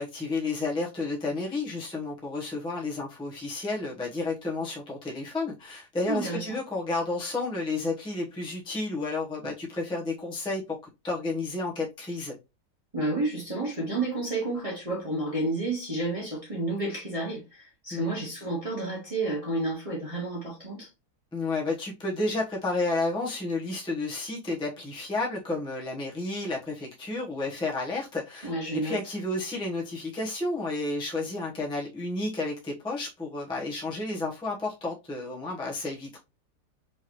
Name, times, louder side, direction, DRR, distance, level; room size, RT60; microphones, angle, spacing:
voice 1, 0.0-10.6 11.0-12.4 17.9-18.1 21.3-36.2, left 2 dB, 5° left, 0.7 m, -31 dB
voice 2, 6.1-6.6 12.9-20.9 28.4-29.0, right 2 dB, 20° right, 1.3 m, -30 dB
4.6 x 3.1 x 3.0 m
omnidirectional pair, 1.8 m